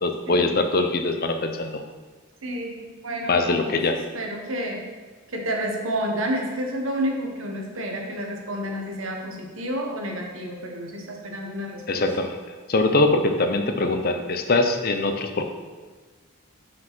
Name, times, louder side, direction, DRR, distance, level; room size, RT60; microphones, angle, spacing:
voice 1, 0.0-1.8 3.2-4.0 11.9-12.4 12.7-15.4, left 2 dB, 45° left, 7 dB, 0.6 m, -22 dB
voice 2, 2.4-3.7 4.1-4.9 5.3-12.1, equal, 65° right, 1 dB, 1.3 m, -30 dB
6.0 x 5.0 x 6.0 m, 1.4 s
head